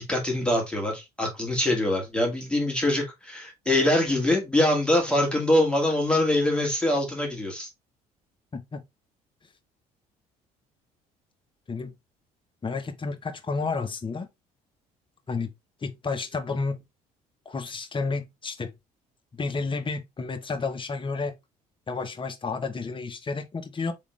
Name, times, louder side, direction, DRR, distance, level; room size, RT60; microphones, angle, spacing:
voice 1, 0.1-7.7, left 1 dB, 5° left, 2.0 m, -24 dB
voice 2, 12.6-14.3 15.3-15.5 15.8-16.8 17.5-18.7 19.3-21.4 21.9-23.9, left 4 dB, 25° left, 1.0 m, -31 dB
3.6 x 3.5 x 3.2 m
hypercardioid pair, 60°, 19 cm